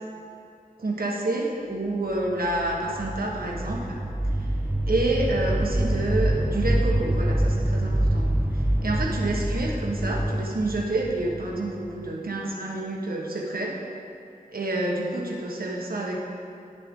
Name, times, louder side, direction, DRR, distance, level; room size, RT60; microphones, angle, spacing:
voice 1, 0.8-4.0 4.9-8.3 8.8-13.8 14.5-16.2, right 2 dB, 75° right, -1 dB, 1.3 m, -28 dB
sound 1, 2.3-12.1, right 1 dB, 10° right, 0.5 m, -26 dB
10.5 x 6.6 x 3.7 m, 2.5 s
wide cardioid pair, 65°, 15 cm